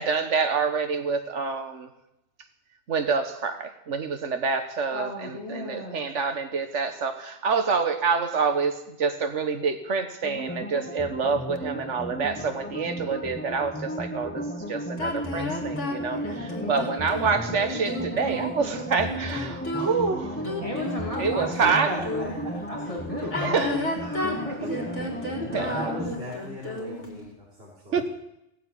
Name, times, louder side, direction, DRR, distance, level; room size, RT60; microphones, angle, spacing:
voice 1, 0.0-1.9 2.9-20.7 21.2-21.9 23.4-23.8 25.5-25.8 27.9-28.0, right 5 dB, 90° right, 1.6 m, -27 dB
voice 2, 4.9-6.1 16.5-17.1 20.6-22.3 22.7-24.8 25.4-25.5, left 1 dB, 30° left, 2.9 m, -35 dB
sound 1, 10.2-26.2, equal, 10° left, 1.0 m, -35 dB
sound 2, 15.0-22.5 23.2-27.2, left 1 dB, 85° left, 3.2 m, -33 dB
voice 3, 21.5-22.6 23.7-24.3 24.6-28.0, equal, 60° right, 3.9 m, -38 dB
17.5 x 8.5 x 8.5 m
omnidirectional pair, 1.2 m